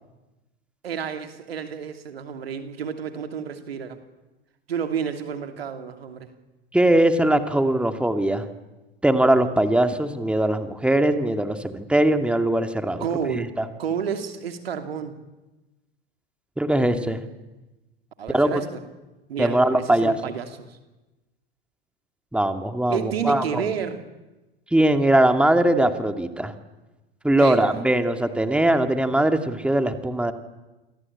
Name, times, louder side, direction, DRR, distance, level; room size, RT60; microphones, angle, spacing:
voice 1, 0.8-4.0 4.7-6.3 13.0-13.5 13.8-15.1 16.8-17.1 18.2-18.7 19.3-20.8 22.9-24.0 27.4-27.8, right 7 dB, 75° right, 7 dB, 2.8 m, -30 dB
voice 2, 6.7-8.5 9.0-13.6 16.6-17.2 18.3-18.6 19.4-20.2 22.3-23.6 24.7-26.5 27.2-30.3, right 1 dB, 5° right, 7 dB, 2.5 m, -21 dB
29.0 x 23.0 x 8.7 m, 1.1 s
figure-of-eight pair, 80°, 30 cm